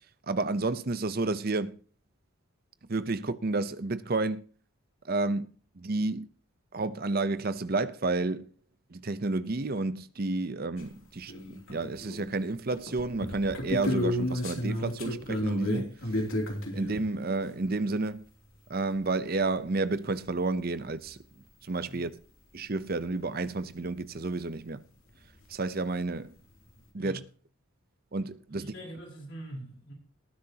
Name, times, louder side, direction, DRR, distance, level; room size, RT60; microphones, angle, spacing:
voice 1, 0.3-1.7 2.9-4.4 5.1-5.5 5.8-6.3 6.7-8.5 8.9-15.9 16.7-18.2 18.7-21.2 21.6-22.1 22.5-24.8 25.5-26.3 26.9-27.2 28.1-28.7, right 3 dB, 45° right, 0.7 m, -30 dB
sound 1, 10.8-10.9 11.3-12.3 12.7-17.0 19.7-19.8 19.9-20.0 21.1-21.2 21.7-21.8 25.4-25.5 25.7-26.1, left 1 dB, 70° left, 2.9 m, -32 dB
voice 2, 26.9-27.2 28.5-29.9, right 1 dB, 50° left, 5.5 m, -43 dB
19.0 x 10.0 x 2.9 m
head